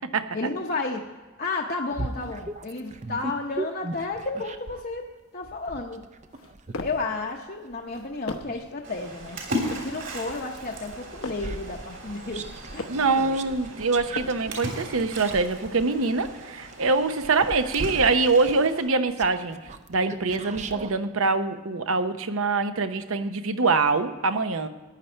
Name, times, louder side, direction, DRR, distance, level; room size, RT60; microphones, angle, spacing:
voice 1, 0.3-1.0 1.4-6.0 6.8-9.4 9.8-12.9 13.2-13.4, left 3 dB, 40° left, 1 dB, 0.7 m, -32 dB
sound 1, 1.9-4.9 5.4-9.8 10.3-21.0, right 3 dB, 30° right, 0.5 m, -39 dB
sound 2, 6.3-7.1 7.8-8.7 9.3-10.0 10.7-11.6 12.3-13.1 13.8-14.6, left 3 dB, 85° left, 0.9 m, -39 dB
Splash splatter, 8.8-18.8, equal, 55° right, 3.3 m, -37 dB
voice 2, 12.9-19.6 19.9-24.7, right 3 dB, 75° right, 10 dB, 0.8 m, -24 dB
14.5 x 9.9 x 4.4 m, 1.3 s
head